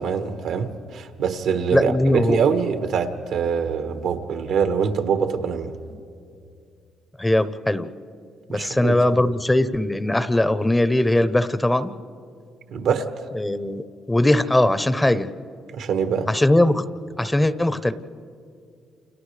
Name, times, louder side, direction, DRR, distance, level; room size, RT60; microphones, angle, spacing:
voice 1, 0.0-5.7 8.5-9.0 12.7-13.1 15.7-16.3, right 6 dB, 80° right, 1.3 m, -24 dB
voice 2, 1.7-2.4 5.9-6.0 7.2-7.9 8.5-11.9 13.3-13.8 14.1-15.3 16.3-16.8 17.2-17.9, left 1 dB, 10° left, 0.7 m, -20 dB
29.0 x 29.0 x 3.3 m
cardioid pair, 90°, 0 cm